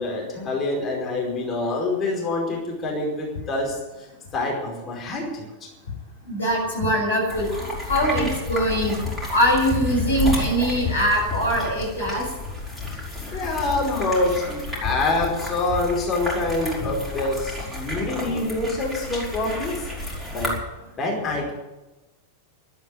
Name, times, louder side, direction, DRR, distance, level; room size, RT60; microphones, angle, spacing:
voice 1, 0.0-3.8 4.3-5.5 12.9-19.9 20.3-20.5 21.0-21.5, left 2 dB, 25° left, -2 dB, 5.0 m, -26 dB
voice 2, 6.3-7.5 7.9-9.0 9.3-12.3 13.3-13.4, equal, 80° left, -2 dB, 7.1 m, -22 dB
sound 1, 7.3-20.6, left 2 dB, ahead, 5.6 m, -31 dB
12.5 x 10.5 x 9.9 m, 1.1 s
figure-of-eight pair, 90°, 0 cm